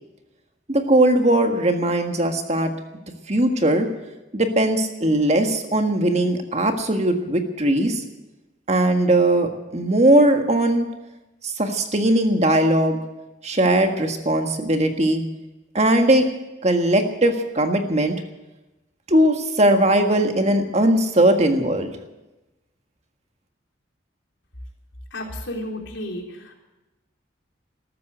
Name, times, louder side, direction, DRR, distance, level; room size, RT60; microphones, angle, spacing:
voice 1, 0.7-2.7 3.3-3.9 4.3-8.0 8.7-10.8 11.4-13.0 13.4-15.2 15.7-16.3 16.6-18.2 19.1-21.9, right 1 dB, 35° right, 5 dB, 1.7 m, -19 dB
voice 2, 25.1-26.5, left 1 dB, 80° left, 1 dB, 3.6 m, -32 dB
14.0 x 13.5 x 7.9 m, 1.0 s
head